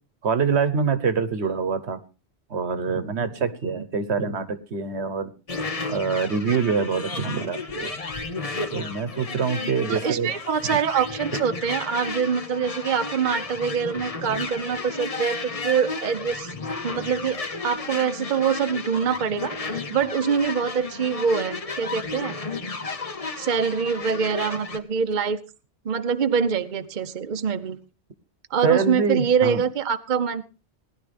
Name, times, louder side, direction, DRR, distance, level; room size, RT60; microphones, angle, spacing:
voice 1, 0.2-2.0 2.5-5.3 5.9-7.9 8.7-10.3 11.3-11.4 28.6-29.6, right 5 dB, 80° right, 12 dB, 1.4 m, -25 dB
sound 1, 5.5-24.8, left 3 dB, 35° left, 1.0 m, -33 dB
voice 2, 9.9-16.5 16.8-17.4 17.6-22.4 23.4-25.4 25.8-27.8 28.5-30.4, right 6 dB, 50° right, 9 dB, 0.9 m, -24 dB
19.0 x 11.0 x 3.4 m, 0.32 s
omnidirectional pair, 1.1 m